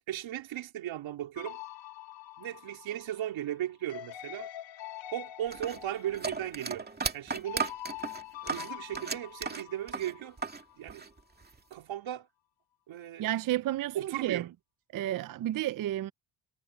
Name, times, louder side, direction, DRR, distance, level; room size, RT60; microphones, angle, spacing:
voice 1, 0.1-1.6 2.4-4.5 5.1-6.9 7.1-7.7 8.4-10.4 10.7-11.0 11.7-12.3 12.9-13.3 13.9-14.5, right 12 dB, 75° right, 3.3 m, -36 dB
sound 1, 1.4-10.8, left 13 dB, 70° left, 3.3 m, -45 dB
sound 2, 5.5-10.6 10.9-11.7, right 4 dB, 20° right, 2.2 m, -35 dB
voice 2, 13.2-14.4 14.9-16.1, right 14 dB, 45° right, 0.4 m, -31 dB
cardioid pair, 130°, 47 cm